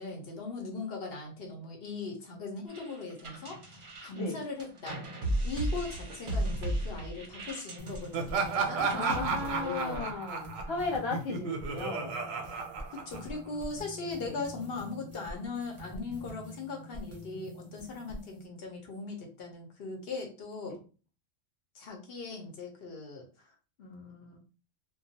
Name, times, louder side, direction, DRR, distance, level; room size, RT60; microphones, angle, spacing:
voice 1, 0.0-5.0 5.4-10.2 12.5-20.8 21.7-23.3 23.8-24.4, left 3 dB, 55° left, 1 dB, 0.9 m, -39 dB
sound 1, 2.7-10.2, right 1 dB, 50° right, 0.7 m, -36 dB
sound 2, 7.8-18.4, equal, 15° right, 0.6 m, -46 dB
Laughter, 8.1-13.6, right 5 dB, 90° right, 1.0 m, -33 dB
voice 2, 8.7-12.2 14.3-14.4, left 3 dB, 25° left, -6 dB, 1.0 m, -36 dB
2.3 x 2.2 x 2.7 m, 0.34 s
omnidirectional pair, 1.3 m